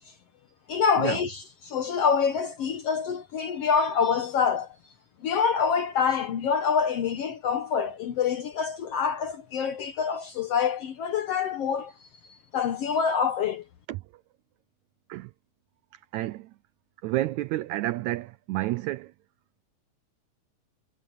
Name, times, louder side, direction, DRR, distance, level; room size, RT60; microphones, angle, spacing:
voice 1, 0.7-4.7 5.2-11.9 12.5-13.6, left 6 dB, 70° left, 1.5 m, -26 dB
voice 2, 16.1-16.5 17.0-19.1, right 16 dB, 85° right, 1.6 m, -30 dB
omnidirectional pair, 3.9 m